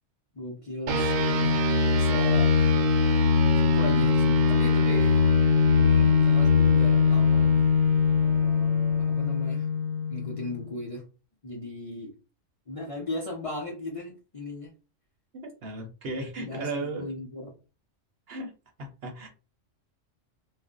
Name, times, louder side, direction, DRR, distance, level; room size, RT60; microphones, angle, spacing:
voice 1, 0.3-2.5 3.5-5.3 5.7-7.6 8.2-9.7 10.1-11.0 11.4-12.1 12.7-14.7 16.4-17.6, left 2 dB, 35° left, -3 dB, 0.6 m, -37 dB
sound 1, 0.9-10.6, left 4 dB, 85° right, 1.0 m, -21 dB
voice 2, 15.3-17.0 18.3-18.5 18.8-19.3, right 2 dB, 60° right, 2 dB, 0.8 m, -35 dB
2.4 x 2.1 x 3.7 m, 0.33 s
omnidirectional pair, 1.3 m